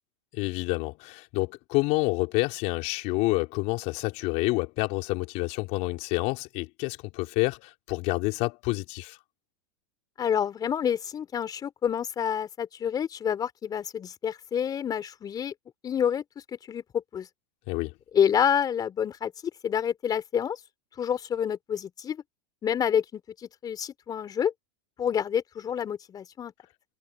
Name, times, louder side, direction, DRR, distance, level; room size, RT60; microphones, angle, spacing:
voice 1, 0.3-9.2 17.7-17.9, left 24 dB, 50° left, 4.0 m, -28 dB
voice 2, 10.2-15.5 15.8-16.2 16.7-17.3 18.1-19.3 19.6-20.6 21.0-22.2 22.6-24.5 25.0-26.5, left 8 dB, 25° left, 4.0 m, -28 dB
hypercardioid pair, 110°, 14 cm